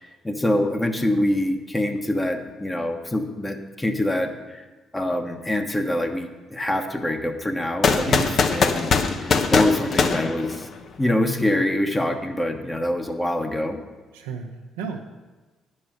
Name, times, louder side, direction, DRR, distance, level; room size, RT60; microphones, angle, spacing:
voice 1, 0.2-4.6 4.9-10.7 11.0-13.8, left 1 dB, 15° left, 4 dB, 1.2 m, -25 dB
sound 1, 7.8-11.0, left 5 dB, 55° left, 0.8 m, -21 dB
voice 2, 8.0-8.4 14.1-15.0, right 6 dB, 85° right, 2 dB, 0.8 m, -33 dB
9.8 x 5.5 x 6.5 m, 1.3 s
hypercardioid pair, 55°, 0 cm